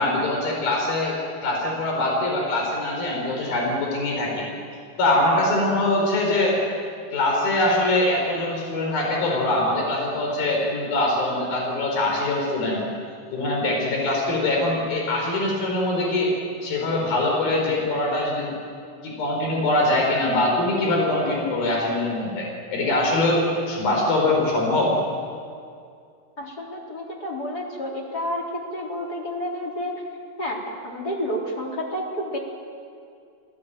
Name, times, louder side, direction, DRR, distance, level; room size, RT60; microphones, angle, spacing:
voice 1, 0.0-4.4 5.0-6.6 7.1-12.8 13.3-16.3 16.6-18.5 19.0-25.0, left 2 dB, 70° left, -1 dB, 6.4 m, -23 dB
voice 2, 26.4-30.0 30.4-32.4, equal, 25° left, -1 dB, 4.1 m, -30 dB
28.5 x 18.0 x 9.2 m, 2.3 s
omnidirectional pair, 4.3 m